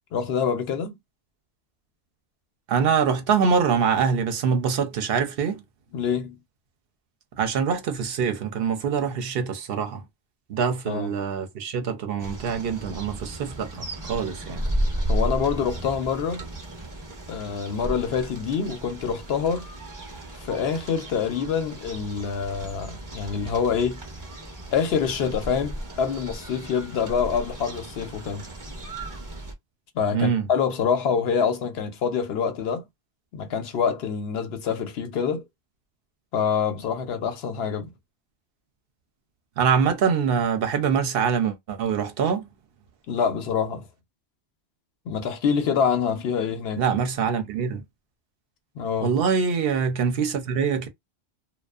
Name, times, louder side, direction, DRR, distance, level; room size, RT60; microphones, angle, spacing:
voice 1, 0.1-1.0 5.9-6.4 10.9-11.2 15.1-16.4 17.3-19.7 20.4-24.0 24.7-28.5 29.9-32.8 33.3-35.4 36.3-37.9 43.1-43.9 45.1-46.8 48.8-49.1, left 6 dB, 75° left, 0.8 m, -26 dB
voice 2, 2.7-5.6 7.4-10.0 10.5-14.7 30.1-30.5 39.6-42.5 46.8-47.8 49.0-50.9, right 6 dB, 70° right, 0.8 m, -24 dB
sound 1, 12.2-29.5, right 1 dB, 20° right, 0.6 m, -34 dB
2.5 x 2.2 x 2.3 m
omnidirectional pair, 1.1 m